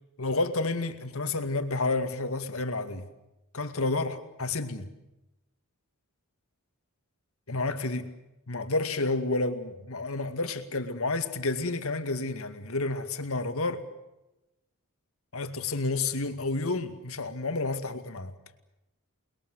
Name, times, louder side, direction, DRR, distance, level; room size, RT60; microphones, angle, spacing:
voice 1, 0.2-3.1 3.5-4.9 7.5-8.1 8.5-13.8 15.3-18.3, left 3 dB, 65° left, 2.3 m, -30 dB
29.0 x 21.5 x 8.1 m
head